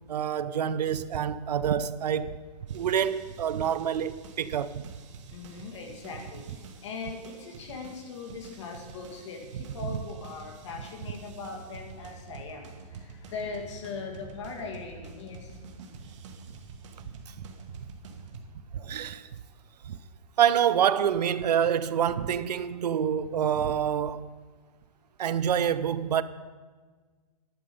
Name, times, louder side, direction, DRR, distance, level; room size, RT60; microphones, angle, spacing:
voice 1, 0.1-2.4 2.7-4.8 17.3-17.5 18.7-19.3 19.8-20.0 20.4-24.3 25.2-26.2, right 9 dB, 85° right, 0.6 m, -27 dB
sound 1, 2.7-18.4, right 4 dB, 50° right, 1.4 m, -48 dB
voice 2, 5.3-15.6, left 4 dB, 45° left, 2.0 m, -40 dB
11.5 x 8.6 x 5.4 m
hypercardioid pair, 170°, 20 cm